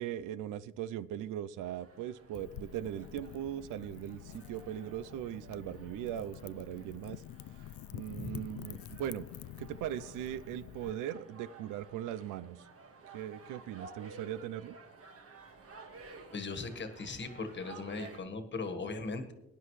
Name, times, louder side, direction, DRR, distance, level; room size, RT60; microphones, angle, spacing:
voice 1, 0.0-7.2 7.9-9.3 9.6-12.6 13.1-14.8, right 11 dB, 85° right, 16 dB, 0.5 m, -39 dB
sound 1, 1.6-18.2, right 4 dB, 50° right, 1.7 m, -55 dB
Wind / Fire, 2.3-10.9, left 12 dB, 70° left, 0.5 m, -48 dB
voice 2, 16.3-19.3, left 3 dB, 35° left, 7 dB, 1.5 m, -39 dB
18.0 x 10.5 x 3.2 m, 0.93 s
cardioid pair, 90°, 30 cm